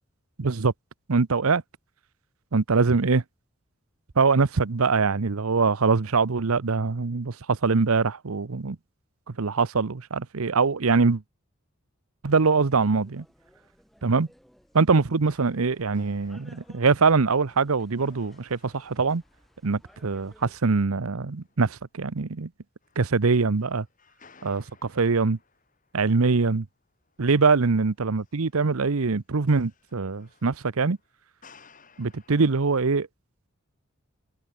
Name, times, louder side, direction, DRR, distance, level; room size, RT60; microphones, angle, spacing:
voice 1, 0.4-0.7 1.1-1.6 2.5-3.2 4.2-8.8 9.4-11.2 12.2-13.2 14.0-14.3 14.7-19.2 19.6-22.5 23.0-23.9 24.4-25.4 25.9-26.7 27.2-31.0 32.0-33.1, right 4 dB, 90° right, 0.8 m, -23 dB
sound 1, 12.3-20.6, equal, ahead, 6.2 m, -59 dB
sound 2, 15.2-21.9 22.3-22.4 22.8-28.9 29.2-32.5, left 5 dB, 40° left, 8.0 m, -60 dB
head